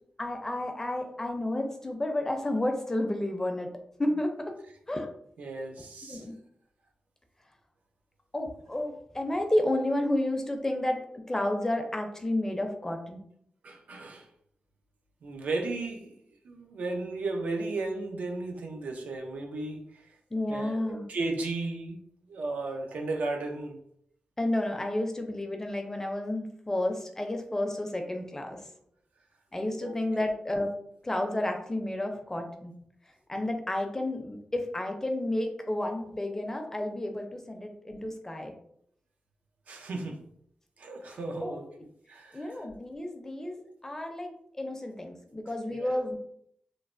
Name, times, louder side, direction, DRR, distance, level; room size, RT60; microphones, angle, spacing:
voice 1, 0.2-3.7 4.0-4.5 4.9-5.1 6.1-6.3 8.3-11.0 11.3-13.2 20.3-21.1 24.4-28.6 29.5-30.7 31.0-32.7 33.3-38.5 41.1-41.6 42.3-46.2, left 1 dB, 20° left, 4 dB, 0.4 m, -31 dB
voice 2, 5.4-6.2 13.6-14.3 15.2-16.2 16.4-20.1 20.5-22.0 22.3-23.8 29.8-30.0 39.7-40.2 40.8-41.7 42.1-42.6 45.7-46.0, right 2 dB, 85° right, 2 dB, 0.5 m, -35 dB
3.1 x 2.0 x 2.4 m, 0.68 s
wide cardioid pair, 90°, 3 cm